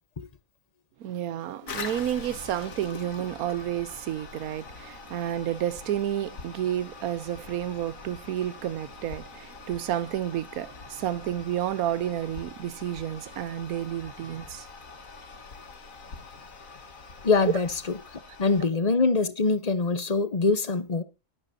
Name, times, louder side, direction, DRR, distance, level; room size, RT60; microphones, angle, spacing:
voice 1, 1.0-14.7, right 11 dB, 85° right, 1.2 m, -31 dB
Toilet flush, 1.7-18.7, left 4 dB, 70° left, 2.0 m, -44 dB
voice 2, 17.2-18.0 18.4-21.0, left 4 dB, 35° left, 0.8 m, -24 dB
19.5 x 8.8 x 2.7 m
omnidirectional pair, 1.5 m